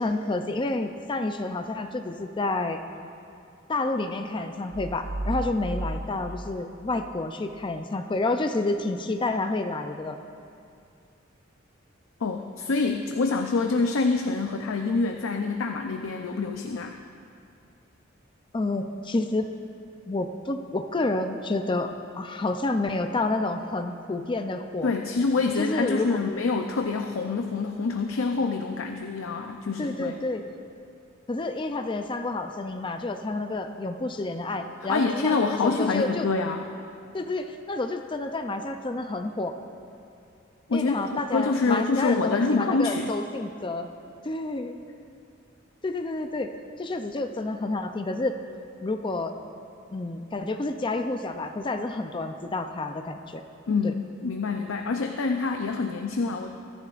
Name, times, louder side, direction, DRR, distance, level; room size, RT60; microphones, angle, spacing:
voice 1, 0.0-2.8 3.7-10.2 18.5-19.5 20.1-24.9 25.6-26.2 29.8-30.4 31.3-36.3 37.1-39.6 40.7-43.9 44.2-44.8 45.8-46.5 46.8-48.4 48.8-49.3 49.9-53.4 53.8-53.9, left 2 dB, 25° left, 6 dB, 0.4 m, -29 dB
sound 1, 4.7-7.6, right 1 dB, 50° right, 0.5 m, -34 dB
voice 2, 12.2-17.0 24.8-30.2 34.9-36.7 40.7-43.1 53.7-56.5, left 4 dB, 85° left, 4 dB, 0.6 m, -26 dB
21.0 x 10.5 x 2.5 m, 2.5 s
head